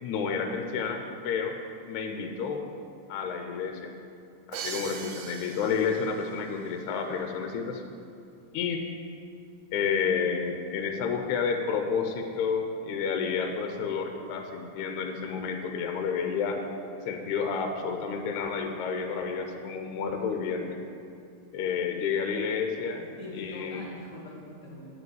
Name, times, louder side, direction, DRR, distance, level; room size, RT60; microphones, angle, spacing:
voice 1, 0.0-1.5 1.9-2.6 3.1-3.9 4.5-7.8 8.5-8.8 9.7-16.6 17.1-20.8 21.5-23.1 23.4-23.9, left 6 dB, 75° left, 4 dB, 1.8 m, -30 dB
Crash cymbal, 4.5-6.4, right 6 dB, 75° right, 2.0 m, -40 dB
voice 2, 23.0-24.9, left 2 dB, 40° left, -9 dB, 2.0 m, -43 dB
9.4 x 5.3 x 7.9 m, 2.5 s
omnidirectional pair, 3.9 m